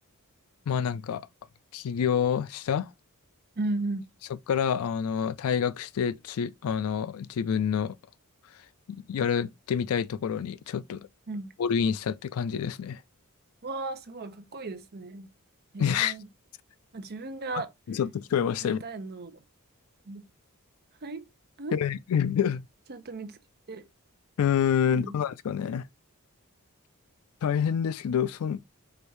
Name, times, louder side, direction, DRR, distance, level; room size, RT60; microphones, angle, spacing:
voice 1, 0.7-1.2 1.7-2.9 4.5-8.0 8.9-11.0 11.6-13.0 15.8-16.2 17.9-18.8 21.7-22.6 24.4-25.8 27.4-28.6, left 7 dB, 70° left, 0.3 m, -27 dB
voice 2, 3.6-4.1 11.3-11.5 13.6-15.3 15.7-16.3 16.9-17.7 18.6-19.4 20.1-20.2 21.0-21.2 21.6-21.8 22.9-23.4 23.7-23.9 24.8-25.2, right 2 dB, 45° right, 0.7 m, -35 dB
4.9 x 2.6 x 3.1 m
head